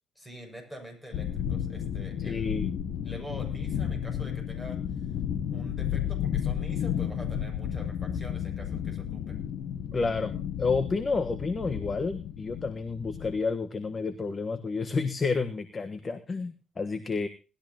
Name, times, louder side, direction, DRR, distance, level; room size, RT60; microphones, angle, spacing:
voice 1, 0.2-2.5 3.0-5.1 5.5-9.4, equal, 10° left, 2 dB, 6.9 m, -45 dB
sound 1, 1.1-13.4, left 9 dB, 80° left, 1.0 m, -32 dB
voice 2, 2.2-2.7 9.9-17.3, left 4 dB, 35° left, 10 dB, 1.2 m, -30 dB
19.5 x 13.0 x 2.9 m, 0.33 s
cardioid pair, 90°, 0 cm